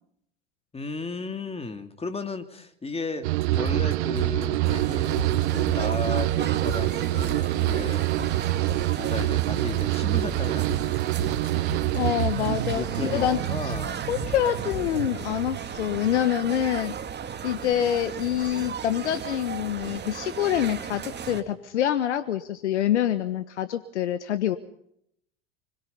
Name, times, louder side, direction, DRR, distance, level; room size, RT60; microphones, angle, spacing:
voice 1, 0.7-8.1 8.9-10.8 12.7-14.0, left 3 dB, 15° left, 8 dB, 2.9 m, -35 dB
sound 1, 3.2-16.6 16.9-17.5, right 18 dB, 70° right, 0.8 m, -26 dB
sound 2, 3.4-15.2, left 6 dB, 45° left, 7.9 m, -39 dB
sound 3, 4.6-21.4, right 7 dB, 30° right, 2.4 m, -36 dB
voice 2, 11.9-13.8 14.1-16.9 17.4-24.6, left 11 dB, 85° left, 12 dB, 1.3 m, -26 dB
25.5 x 21.5 x 5.4 m, 0.70 s
hypercardioid pair, 85°, 34 cm